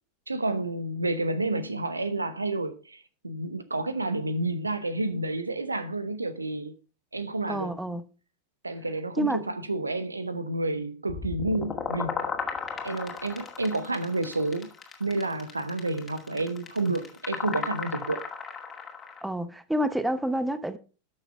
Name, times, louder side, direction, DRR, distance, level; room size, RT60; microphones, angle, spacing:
voice 1, 0.3-6.7 7.1-7.7 8.6-12.2 12.8-14.7 15.0-18.2, right 2 dB, 80° right, 0.9 m, -30 dB
voice 2, 7.5-8.0 9.2-9.4 19.2-20.8, right 1 dB, 5° right, 0.9 m, -28 dB
sound 1, 11.1-19.2, left 6 dB, 20° left, 2.2 m, -35 dB
12.5 x 6.5 x 4.4 m
figure-of-eight pair, 90°, 0 cm